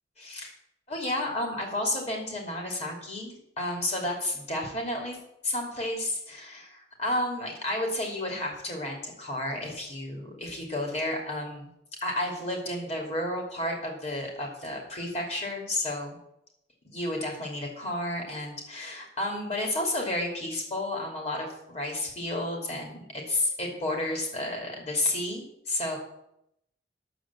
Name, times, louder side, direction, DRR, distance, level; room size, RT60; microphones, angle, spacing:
voice 1, 0.2-0.5 0.9-5.2 5.4-11.7 12.0-16.2 16.8-26.0, left 1 dB, 35° left, 0 dB, 2.8 m, -31 dB
10.0 x 7.2 x 7.4 m, 0.79 s
head